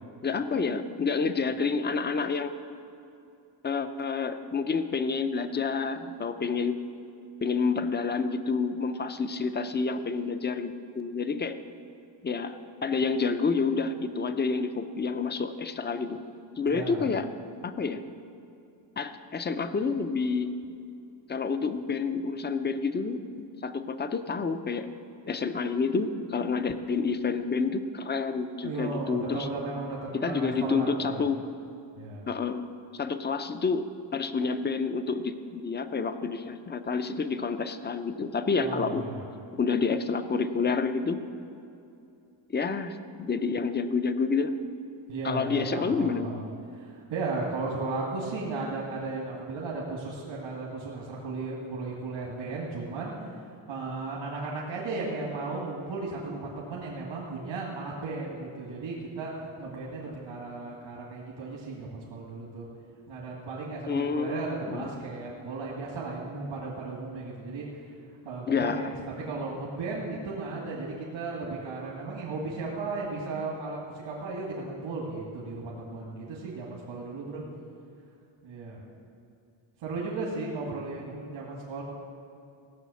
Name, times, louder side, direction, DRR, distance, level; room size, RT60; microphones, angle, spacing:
voice 1, 0.2-2.5 3.6-6.8 7.4-11.6 12.2-16.2 16.6-17.3 17.6-18.0 19.0-20.5 21.3-23.2 23.6-24.9 25.3-29.5 30.1-31.5 32.3-32.7 32.9-33.9 34.1-39.1 39.5-41.2 42.5-44.5 45.2-46.3 63.9-64.9 68.5-68.9, left 4 dB, 25° left, 10 dB, 0.5 m, -29 dB
voice 2, 16.7-17.1 28.6-31.2 32.0-32.3 38.6-39.2 45.1-53.4 53.7-62.7 63.1-67.9 68.3-77.4 78.4-78.8 79.8-81.8, right 3 dB, 85° right, -3 dB, 2.3 m, -35 dB
16.5 x 6.3 x 8.3 m, 2.6 s
wide cardioid pair, 165°, 47 cm